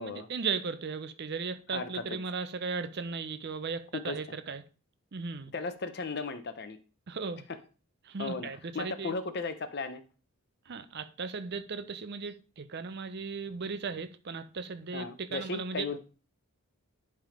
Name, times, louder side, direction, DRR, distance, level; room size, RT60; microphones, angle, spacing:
voice 1, 0.0-4.6 5.1-5.5 7.1-7.4 8.0-9.1 10.7-16.0, right 5 dB, 45° right, 0.5 m, -36 dB
voice 2, 1.7-2.0 3.9-4.2 5.5-6.8 8.2-8.5 8.7-10.0 14.9-16.0, left 3 dB, 45° left, 0.7 m, -35 dB
10.5 x 3.5 x 5.0 m
head